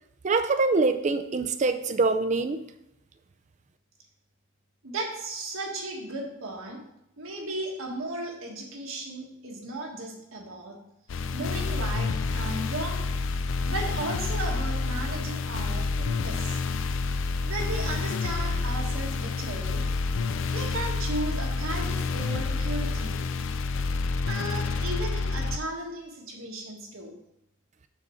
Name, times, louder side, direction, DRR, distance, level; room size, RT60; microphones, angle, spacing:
voice 1, 0.2-2.6, right 3 dB, 35° right, 10 dB, 0.4 m, -24 dB
voice 2, 4.8-6.8 7.2-10.8 11.3-13.1 13.7-16.6 17.4-19.8 20.5-23.3 24.3-27.1, right 2 dB, 75° right, 0 dB, 1.6 m, -35 dB
sound 1, 11.1-25.6, left 4 dB, 60° left, 0.4 m, -29 dB
6.3 x 4.1 x 6.3 m, 0.84 s
head